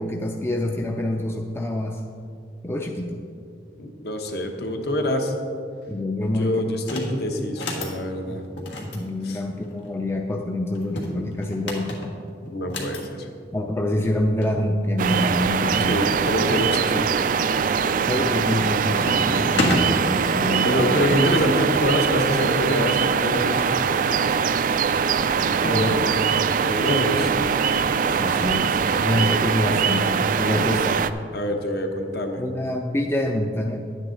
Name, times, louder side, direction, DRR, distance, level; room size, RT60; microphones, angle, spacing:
voice 1, 0.0-2.0 2.6-3.3 5.9-6.6 8.3-8.4 8.7-11.9 13.5-16.3 18.1-21.0 25.7-26.0 28.1-31.1 32.4-33.8, left 1 dB, 15° left, 2 dB, 0.4 m, -26 dB
voice 2, 3.8-5.3 6.2-8.4 9.2-9.4 12.5-13.3 15.9-17.1 20.6-23.8 25.7-27.6 28.4-28.6 31.3-32.4, equal, 60° left, 4 dB, 1.1 m, -26 dB
sound 1, 6.8-7.1 7.5-8.0 8.6-9.9 10.7-13.0 14.1-14.2 14.4-14.5 15.1-15.9 16.5-17.0 17.5-17.9 18.2-18.6 18.9-19.9 20.8-23.8 24.7-25.8, left 1 dB, 85° left, 1.6 m, -32 dB
sound 2, 15.0-31.1, right 6 dB, 50° right, 0.3 m, -22 dB
11.0 x 9.1 x 3.9 m, 2.4 s
head